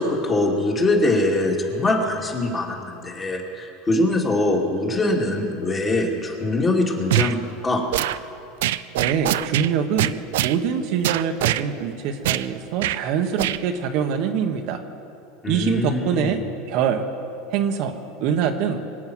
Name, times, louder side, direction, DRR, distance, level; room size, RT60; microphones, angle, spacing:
voice 1, 0.0-7.8 15.4-16.3, left 2 dB, 20° left, -1 dB, 2.4 m, -23 dB
sound 1, 7.1-7.3 7.9-8.2 8.6-9.7 10.0-10.6 11.0-11.6 12.2-12.5 12.8-13.0 13.4-13.6, right 14 dB, 80° right, 0.4 m, -23 dB
voice 2, 9.0-10.1 10.4-14.8 15.5-16.4 16.7-17.1 17.5-18.8, right 7 dB, 55° right, 5 dB, 1.2 m, -24 dB
24.0 x 8.7 x 6.3 m, 2.7 s
supercardioid pair, 140°, 0 cm